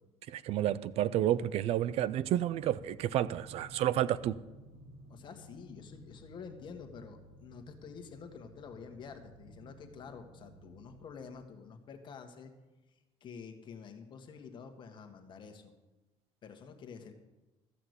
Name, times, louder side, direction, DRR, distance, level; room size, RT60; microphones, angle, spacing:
voice 1, 0.3-4.4, right 12 dB, 60° right, 17 dB, 0.4 m, -30 dB
sound 1, 2.1-11.2, right 1 dB, 80° right, 4.6 m, -56 dB
voice 2, 5.1-12.5 13.2-15.7 16.4-17.1, left 6 dB, 40° left, 5 dB, 1.4 m, -48 dB
14.0 x 5.9 x 8.0 m, 1.1 s
cardioid pair, 130°, 12 cm